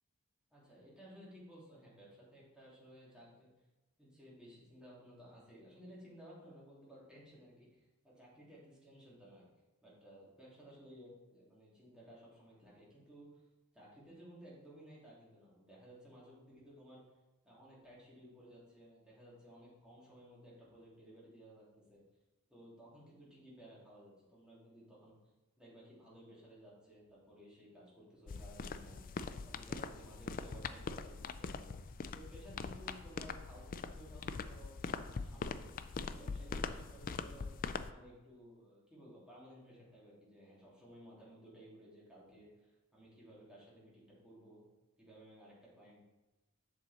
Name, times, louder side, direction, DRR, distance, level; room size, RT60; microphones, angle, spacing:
voice 1, 0.5-3.5 4.0-9.5 9.8-13.4 13.7-17.0 17.4-22.0 22.5-25.2 25.6-29.0 29.4-31.7 32.1-34.8 35.1-37.5 37.9-44.6 45.0-46.0, equal, 5° right, -7 dB, 2.8 m, -57 dB
sound 1, 28.3-37.9, left 5 dB, 40° left, 0.4 m, -42 dB
7.7 x 6.3 x 4.2 m, 1.1 s
head